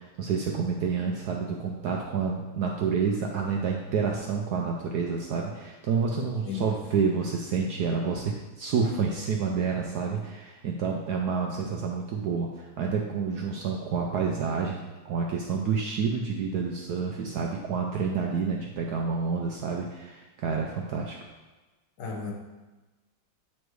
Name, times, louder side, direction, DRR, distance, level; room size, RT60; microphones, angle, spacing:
voice 1, 0.0-14.8 15.0-21.2, right 5 dB, 75° right, 0 dB, 0.9 m, -29 dB
voice 2, 6.1-6.8 22.0-22.3, left 5 dB, 60° left, 0 dB, 1.6 m, -35 dB
8.9 x 3.2 x 4.7 m, 1.2 s
omnidirectional pair, 2.3 m